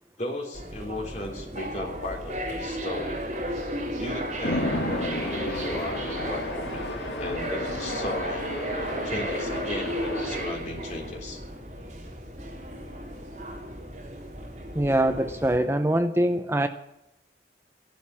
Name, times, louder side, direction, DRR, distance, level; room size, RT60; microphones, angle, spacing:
voice 1, 0.2-3.3 4.0-5.1 5.4-6.9 7.2-8.5 9.0-11.4, left 1 dB, 40° left, 0 dB, 3.5 m, -35 dB
sound 1, 0.5-15.6, right 1 dB, 40° right, 3.8 m, -34 dB
Chatter / Traffic noise roadway noise / Train, 4.4-10.4, left 1 dB, 75° left, 2.5 m, -33 dB
voice 2, 14.8-16.7, right 1 dB, 15° right, 8 dB, 0.6 m, -23 dB
13.5 x 12.0 x 7.4 m, 0.87 s
head